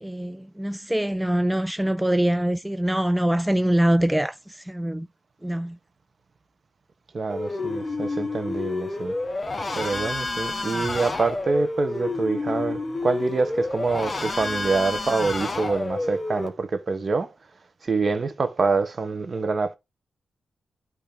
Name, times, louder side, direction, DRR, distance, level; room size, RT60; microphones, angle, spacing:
voice 1, 0.0-5.1 5.4-5.8, right 1 dB, 10° right, 0.4 m, -24 dB
voice 2, 7.1-9.1 9.7-17.3 17.8-19.8, right 4 dB, 50° right, 1.3 m, -26 dB
sound 1, 7.3-16.5, left 2 dB, 40° left, 2.2 m, -29 dB
9.0 x 3.3 x 6.0 m
cardioid pair, 65°, 0 cm